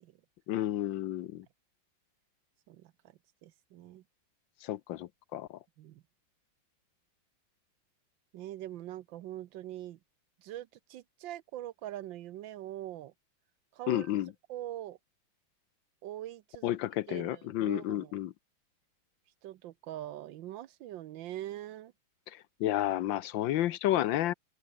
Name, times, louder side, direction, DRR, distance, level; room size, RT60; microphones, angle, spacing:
voice 1, 0.5-1.4 4.6-5.6 13.9-14.3 16.6-18.3 22.6-24.3, left 13 dB, 75° left, 1.4 m, -31 dB
voice 2, 3.4-4.0 5.8-6.0 8.3-10.0 10.4-13.1 13.7-14.1 14.5-15.0 16.0-16.8 17.1-18.2 19.4-21.9, right 13 dB, 75° right, 1.4 m, -43 dB
omnidirectional pair, 2.2 m